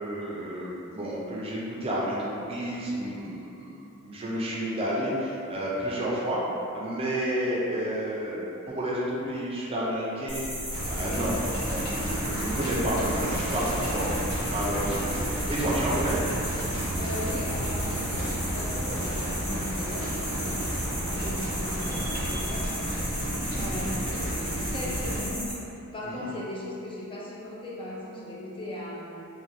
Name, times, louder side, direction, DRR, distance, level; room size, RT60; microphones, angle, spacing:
voice 1, 0.0-2.2 2.5-6.4 6.7-10.4 11.0-14.1 14.4-15.1 15.5-16.2 23.3-23.6 26.2-26.3, right 1 dB, 25° right, -5 dB, 0.5 m, -30 dB
sound 1, 10.3-25.5, equal, 55° left, 1.3 m, -35 dB
sound 2, 10.7-25.2, right 1 dB, 80° left, 1.0 m, -32 dB
sound 3, 10.7-22.5, right 2 dB, 80° right, 0.3 m, -38 dB
voice 2, 16.7-22.9 23.5-25.5 25.9-29.3, left 1 dB, 25° left, -5 dB, 0.5 m, -38 dB
3.2 x 2.3 x 2.6 m, 2.7 s
head